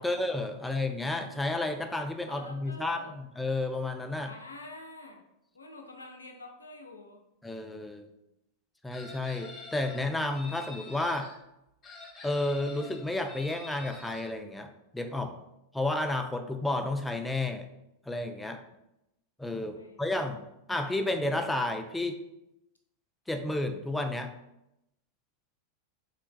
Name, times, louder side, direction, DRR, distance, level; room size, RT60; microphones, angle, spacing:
voice 1, 0.0-4.3 7.4-8.1 8.8-11.3 12.2-15.3 15.7-17.6 18.1-18.6 19.4-22.2 23.3-24.3, left 2 dB, 5° left, 5 dB, 0.4 m, -31 dB
voice 2, 2.3-3.2 4.2-5.2 5.5-7.2 19.7-20.0, left 2 dB, 75° left, 3 dB, 0.5 m, -47 dB
Chicken rooster, 8.9-11.3 11.8-14.3, left 3 dB, 20° left, 0.9 m, -47 dB
4.0 x 3.2 x 2.3 m, 0.87 s
figure-of-eight pair, 90°, 0 cm